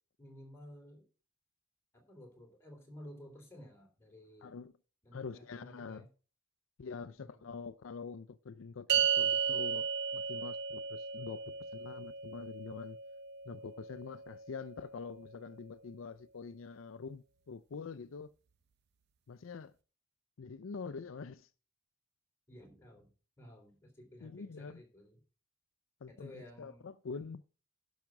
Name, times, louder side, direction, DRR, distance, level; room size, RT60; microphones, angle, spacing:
voice 1, 0.2-1.0 1.9-4.5 5.0-6.1 7.0-7.5 22.5-23.1 23.4-25.2 26.1-26.8, equal, 15° left, 3.4 m, -54 dB
voice 2, 4.4-4.7 5.1-6.0 6.8-13.0 13.5-18.3 19.3-19.7 20.4-21.5 24.2-24.8 26.0-27.4, left 5 dB, 75° left, 0.5 m, -45 dB
sound 1, 8.9-15.4, right 7 dB, 55° right, 0.7 m, -35 dB
10.5 x 6.4 x 5.8 m
head